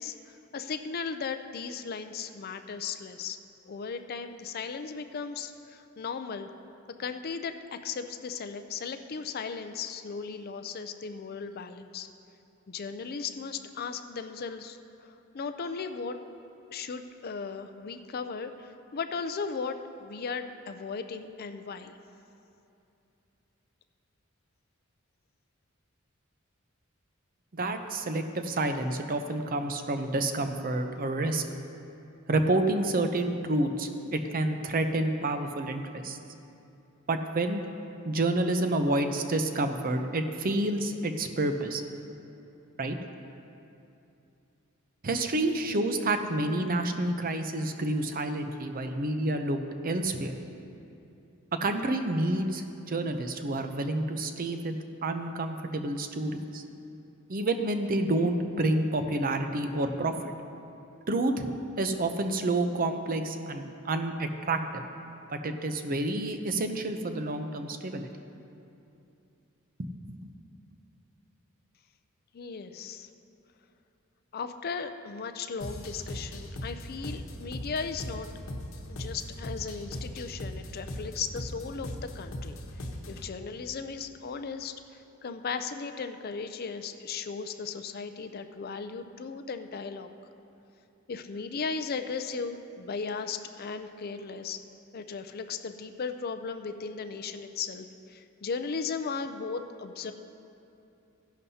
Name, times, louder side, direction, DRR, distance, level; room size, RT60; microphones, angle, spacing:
voice 1, 0.0-3.4 3.7-6.5 7.0-12.1 12.7-16.2 16.7-22.0 72.3-73.1 74.3-78.3 78.9-90.1 91.1-94.6 94.9-100.1, left 5 dB, 50° left, 9 dB, 0.5 m, -36 dB
voice 2, 27.5-31.4 32.3-36.2 37.1-37.6 38.0-41.8 42.8-43.0 45.0-50.4 51.5-56.6 57.3-60.3 61.1-61.5 61.8-64.8 65.3-68.1 69.8-70.3, right 2 dB, 45° right, 7 dB, 0.6 m, -29 dB
sound 1, 75.6-83.3, left 1 dB, 90° left, 1.1 m, -39 dB
15.0 x 11.0 x 2.8 m, 2.7 s
head